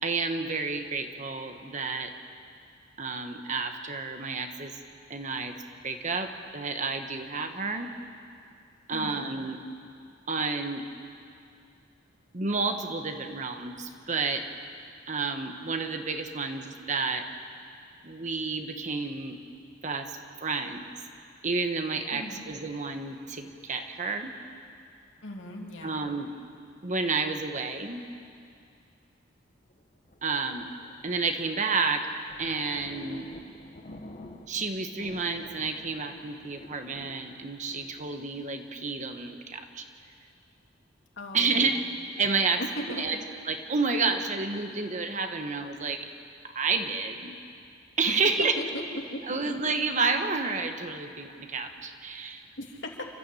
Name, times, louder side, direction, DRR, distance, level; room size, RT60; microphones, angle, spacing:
voice 1, 0.0-2.1 3.0-4.7 5.1-5.6 5.8-7.9 8.9-9.6 10.3-10.8 12.3-14.4 15.1-17.3 18.0-19.4 19.8-20.8 21.4-24.3 25.8-26.3 26.8-28.0 30.2-30.7 31.0-32.1 32.4-33.3 34.5-39.8 41.3-41.8 42.2-42.6 43.0-43.2 43.5-46.1 46.5-47.3 48.0-48.6 49.2-52.5, right 4 dB, 40° right, 6 dB, 1.4 m, -30 dB
voice 2, 8.9-9.3 22.1-22.5 25.2-26.1 41.2-41.9 42.8-43.2 48.1-48.2 48.6-48.8 49.1-49.6 52.6-53.0, left 1 dB, 70° left, 0 dB, 2.9 m, -38 dB
sound 1, 29.7-31.4 31.9-32.0 32.2-34.7 35.0-38.0, left 1 dB, 40° left, 1.2 m, -48 dB
29.0 x 13.5 x 8.5 m, 2.4 s
head